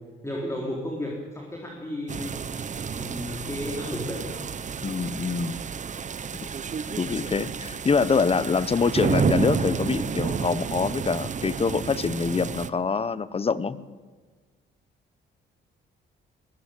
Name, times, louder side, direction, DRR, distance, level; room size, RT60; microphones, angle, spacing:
voice 1, 0.2-2.4 2.8-4.2, left 1 dB, 15° left, -1 dB, 4.0 m, -33 dB
sound 1, 2.1-12.7, right 6 dB, 40° right, 0.9 m, -30 dB
voice 2, 4.8-5.7 6.4-6.5 7.0-13.8, left 5 dB, 30° left, 17 dB, 0.9 m, -25 dB
21.0 x 14.5 x 8.9 m, 1.4 s
cardioid pair, 90°, 20 cm